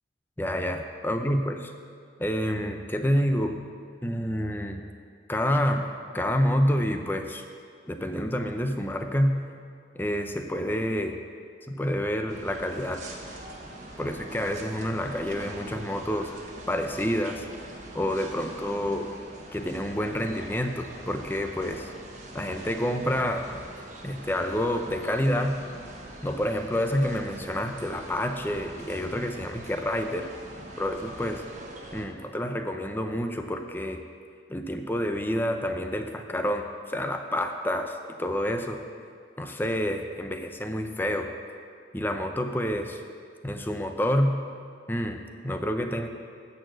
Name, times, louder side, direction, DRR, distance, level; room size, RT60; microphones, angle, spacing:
voice 1, 0.4-1.6 2.2-3.6 4.0-4.8 5.3-5.9 6.1-7.4 7.9-9.3 10.0-11.2 11.7-13.0 14.0-16.3 16.7-17.4 17.9-19.1 19.5-21.9 22.3-23.5 24.0-25.6 26.2-30.3 30.8-31.4 31.9-34.0 34.5-38.8 39.4-41.3 41.9-43.0 43.4-44.3 44.9-46.1, equal, 10° left, 5 dB, 0.6 m, -28 dB
sound 1, 12.3-32.1, right 1 dB, 45° right, 1.2 m, -43 dB
13.5 x 4.6 x 7.8 m, 2.2 s
head